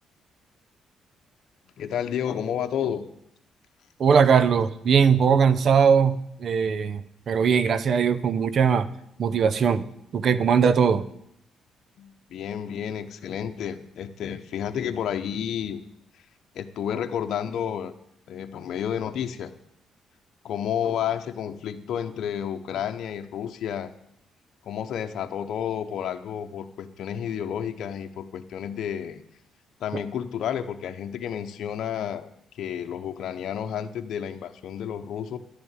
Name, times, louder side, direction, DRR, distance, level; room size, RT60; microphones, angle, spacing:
voice 1, 1.8-3.1 12.0-15.8 16.5-17.9 18.3-19.5 20.4-23.9 24.6-29.2 29.8-32.3 32.5-35.4, left 9 dB, 70° left, 6 dB, 0.8 m, -31 dB
voice 2, 4.0-7.0 7.3-8.9 9.2-9.9 10.1-11.1, right 6 dB, 55° right, 14 dB, 0.7 m, -20 dB
11.0 x 7.0 x 9.0 m, 0.74 s
cardioid pair, 90°, 0 cm